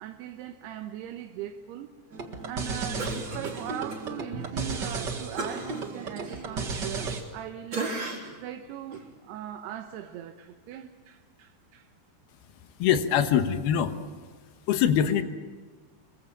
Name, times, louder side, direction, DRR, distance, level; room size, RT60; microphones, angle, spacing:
voice 1, 0.0-8.1 8.4-11.9, right 11 dB, 80° right, 2.9 m, -40 dB
sound 1, 2.1-7.2, right 4 dB, 55° right, 1.2 m, -34 dB
Cough, 3.0-4.0 4.4-4.6 5.4-7.4 7.7-8.4 8.9-9.1, right 2 dB, 30° right, 3.9 m, -36 dB
voice 2, 12.8-13.9 14.7-15.2, left 9 dB, 70° left, 3.0 m, -23 dB
26.0 x 23.0 x 7.4 m
omnidirectional pair, 4.9 m